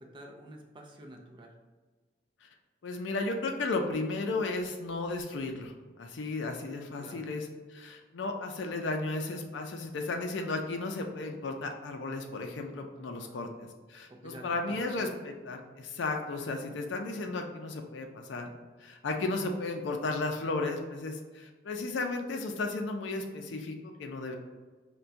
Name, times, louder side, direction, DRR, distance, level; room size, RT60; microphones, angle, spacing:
voice 1, 0.0-1.6 7.0-7.3 13.0-13.4 14.1-15.2, right 1 dB, 25° right, 1 dB, 0.4 m, -49 dB
voice 2, 2.8-18.5 18.8-24.3, left 3 dB, 70° left, 4 dB, 0.4 m, -34 dB
5.5 x 2.2 x 2.5 m, 1.4 s
head